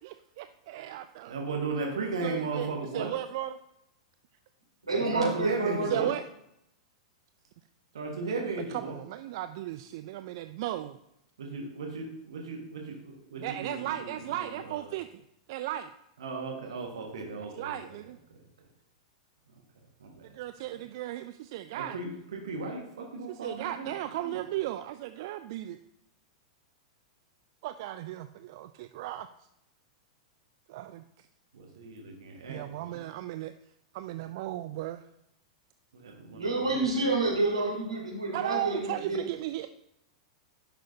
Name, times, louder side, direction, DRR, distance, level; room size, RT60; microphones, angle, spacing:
voice 1, 0.4-1.4 2.2-3.6 5.9-6.2 8.8-11.0 13.4-15.2 15.5-15.9 17.6-18.2 20.2-22.0 23.3-25.8 27.6-28.3 28.6-29.3 30.7-31.3 32.5-33.5 33.9-35.0 38.3-39.7, right 14 dB, 50° right, 10 dB, 0.3 m, -36 dB
voice 2, 1.3-3.1 4.9-6.1 7.9-8.9 11.4-14.9 16.2-18.0 18.3-18.4 20.0-20.3 20.7-20.8 21.7-23.9 24.2-24.4 31.5-33.0 35.9-36.8, right 3 dB, 65° right, 0 dB, 1.5 m, -36 dB
voice 3, 4.8-6.0 36.3-39.2, right 2 dB, 85° right, -2 dB, 2.8 m, -28 dB
10.5 x 6.2 x 2.7 m, 0.80 s
figure-of-eight pair, 95°, 3 cm